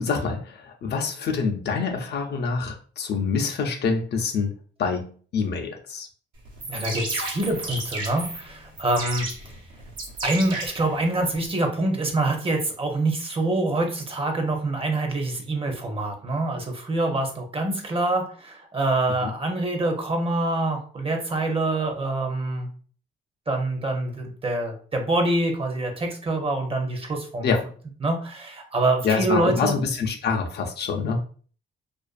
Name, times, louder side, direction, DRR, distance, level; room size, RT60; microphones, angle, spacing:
voice 1, 0.0-4.5 4.8-6.1 19.2-19.3 27.4-27.6 29.0-31.2, left 5 dB, 55° left, 3 dB, 0.5 m, -26 dB
sound 1, 6.5-11.5, right 2 dB, 80° right, 0.9 m, -34 dB
voice 2, 6.7-9.3 10.2-22.7 23.5-27.5 28.0-29.7, right 2 dB, 30° right, 3 dB, 0.6 m, -25 dB
2.4 x 2.4 x 2.4 m, 0.42 s
cardioid pair, 90°, 20 cm